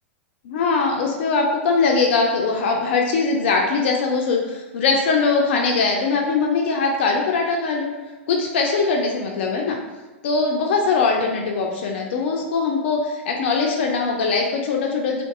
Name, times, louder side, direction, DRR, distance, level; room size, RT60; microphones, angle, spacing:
voice 1, 0.4-7.9 8.3-9.8 10.2-15.2, left 4 dB, 55° left, 1 dB, 0.4 m, -21 dB
2.5 x 2.5 x 2.4 m, 1.2 s
figure-of-eight pair, 105°, 7 cm